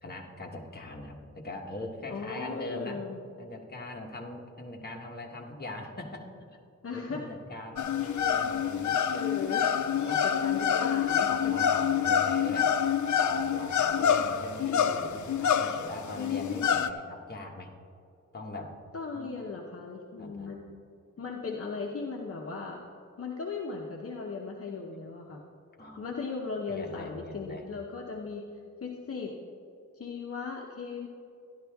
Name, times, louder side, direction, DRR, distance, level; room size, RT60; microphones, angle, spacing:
voice 1, 0.0-3.0 3.4-6.6 6.9-9.0 9.9-10.5 11.1-12.8 13.2-17.7 18.3-18.7 19.1-19.3 20.2-20.5 25.8-26.0 26.7-27.6, left 2 dB, 30° left, 0 dB, 1.2 m, -41 dB
voice 2, 2.1-3.2 6.8-7.2 8.0-8.5 9.1-10.0 10.4-11.5 16.6-16.8 18.9-20.8 21.2-22.8 23.2-25.4 26.0-28.5 28.8-29.3 29.9-31.1, left 4 dB, 50° left, -1 dB, 0.8 m, -37 dB
sound 1, 7.8-16.9, left 8 dB, 75° left, 0.5 m, -27 dB
12.0 x 11.0 x 3.5 m, 2.4 s
wide cardioid pair, 170°, 30 cm